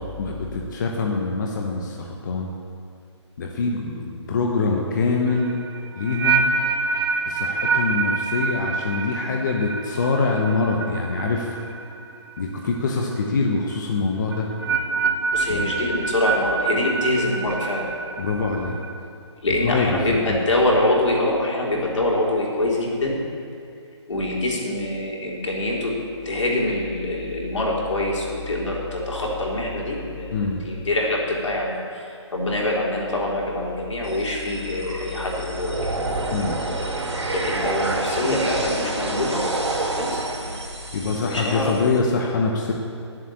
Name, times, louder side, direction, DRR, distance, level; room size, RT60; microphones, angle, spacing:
voice 1, 0.2-2.0 2.2-2.5 3.4-5.6 6.0-6.5 7.3-11.6 12.4-14.5 15.5-15.7 18.2-18.8 19.6-20.4 30.3-30.6 36.3-36.6 40.9-42.7, left 4 dB, 40° left, 0 dB, 1.1 m, -24 dB
sound 1, 5.3-12.4 12.7-13.1 14.3-18.9, right 4 dB, 50° right, 1.1 m, -26 dB
voice 2, 15.3-17.9 19.4-23.2 24.1-25.9 26.3-35.9 37.3-39.4 40.0-40.2 41.3-41.9, left 1 dB, 80° left, -3 dB, 3.6 m, -24 dB
sound 2, 34.0-42.0, right 2 dB, 85° right, 3.3 m, -28 dB
11.5 x 7.7 x 8.5 m, 2.4 s
hypercardioid pair, 160°, 15 cm